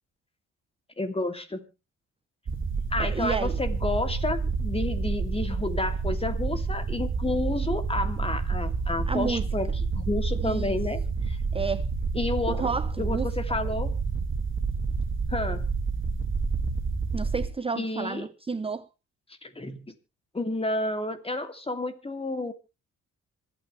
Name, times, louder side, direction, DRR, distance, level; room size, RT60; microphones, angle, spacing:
voice 1, 1.0-1.7 2.9-11.0 11.3-11.4 12.1-12.7 13.0-13.9 15.3-15.7 17.7-18.3 19.4-19.9 20.3-22.5, left 2 dB, 20° left, 2.8 m, -30 dB
sound 1, 2.5-17.5, right 4 dB, 40° right, 2.1 m, -29 dB
voice 2, 3.0-3.6 9.1-9.5 10.4-10.8 11.5-11.9 12.5-13.3 17.1-18.9, right 4 dB, 20° right, 0.7 m, -31 dB
26.5 x 9.1 x 3.3 m
cardioid pair, 90°, 30 cm